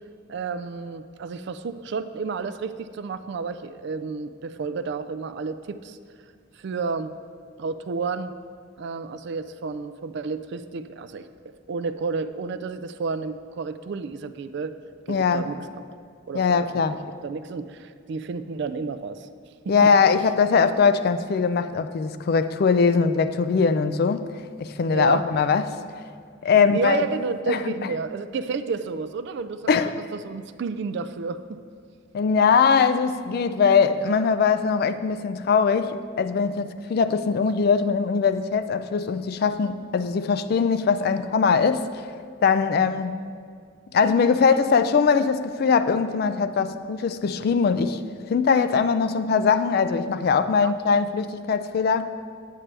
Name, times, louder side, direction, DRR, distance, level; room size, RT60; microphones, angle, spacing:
voice 1, 0.3-6.0 6.6-7.1 7.6-8.3 8.8-11.3 11.7-14.8 15.1-15.8 16.3-16.7 17.0-19.3 19.7-19.9 24.9-25.3 26.6-29.7 30.0-31.6 50.6-50.7, right 4 dB, 60° right, 11 dB, 0.3 m, -31 dB
voice 2, 15.1-15.4 16.3-17.0 19.7-24.3 24.6-25.8 26.4-27.0 27.5-27.6 29.7-29.9 32.1-42.0 42.4-43.2 43.9-48.0 48.3-52.1, left 5 dB, 50° left, 11 dB, 0.3 m, -21 dB
8.7 x 8.3 x 3.3 m, 2.2 s
head